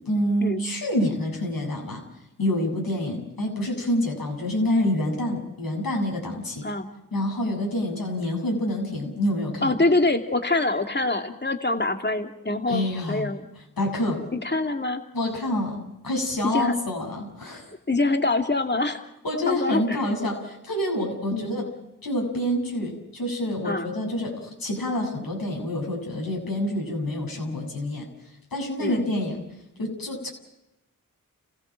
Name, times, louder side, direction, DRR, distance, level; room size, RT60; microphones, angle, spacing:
voice 1, 0.0-2.0 2.4-6.7 7.1-9.8 12.7-13.3 13.8-14.2 15.1-17.6 19.2-21.7 22.0-28.1 28.5-29.4 29.8-30.3, left 1 dB, 85° left, 0 dB, 7.8 m, -27 dB
voice 2, 9.6-13.4 14.3-15.0 16.5-16.7 17.9-19.0 19.5-20.0 21.3-21.6 23.6-23.9 28.8-29.0, left 2 dB, 30° left, 5 dB, 2.6 m, -25 dB
30.0 x 16.0 x 7.6 m, 0.91 s
cardioid pair, 40°, 34 cm